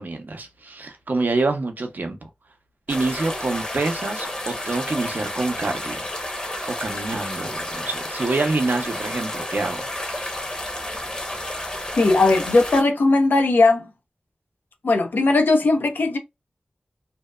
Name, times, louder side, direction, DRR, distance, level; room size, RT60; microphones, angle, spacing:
voice 1, 0.0-2.3 2.9-6.1 6.6-10.3, right 3 dB, 65° right, 0.5 m, -27 dB
sound 1, 2.9-12.8, left 1 dB, 25° left, 0.8 m, -31 dB
voice 2, 12.0-13.9 14.8-16.2, left 3 dB, 85° left, 0.6 m, -18 dB
2.7 x 2.1 x 2.2 m
wide cardioid pair, 55°, 3 cm